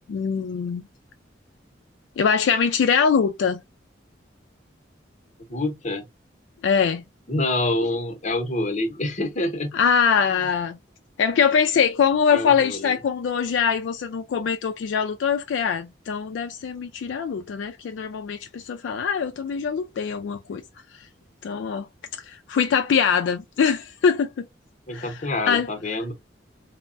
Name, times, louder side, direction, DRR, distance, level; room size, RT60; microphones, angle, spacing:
voice 1, 0.1-0.8 2.2-3.6 6.6-7.0 9.7-10.8 11.2-20.6 21.4-21.9 22.3-24.5 24.9-25.2 25.5-25.7, left 6 dB, 75° left, 0.3 m, -23 dB
voice 2, 5.5-6.1 7.3-9.7 12.3-13.0 24.9-26.1, left 2 dB, 40° left, 0.8 m, -26 dB
3.3 x 2.0 x 2.5 m
head